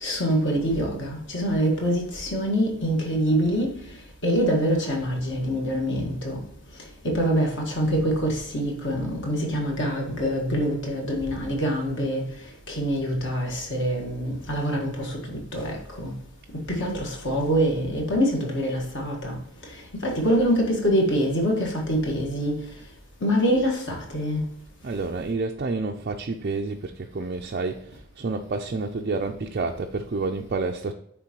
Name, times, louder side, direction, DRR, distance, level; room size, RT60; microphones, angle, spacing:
voice 1, 0.0-3.7 4.2-6.4 7.0-12.2 12.7-16.1 16.7-19.4 20.0-22.6 23.2-24.4, equal, 55° left, 1.7 m, -25 dB
voice 2, 24.8-30.9, right 3 dB, 45° right, 0.4 m, -29 dB
9.6 x 3.6 x 3.0 m
head